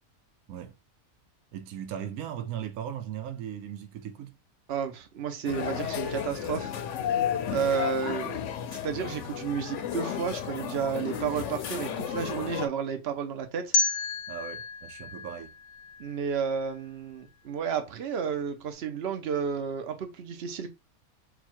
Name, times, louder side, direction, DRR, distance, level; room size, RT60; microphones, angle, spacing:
voice 1, 1.5-4.3 8.1-8.2 14.3-15.5, right 9 dB, 90° right, 1.1 m, -38 dB
voice 2, 4.7-6.7 7.5-8.3 8.7-13.7 16.0-20.7, right 6 dB, 50° right, 1.0 m, -31 dB
sound 1, 5.5-12.7, left 9 dB, 65° left, 0.8 m, -33 dB
sound 2, 13.7-16.7, left 3 dB, 90° left, 1.1 m, -31 dB
4.1 x 2.4 x 4.4 m
omnidirectional pair, 1.5 m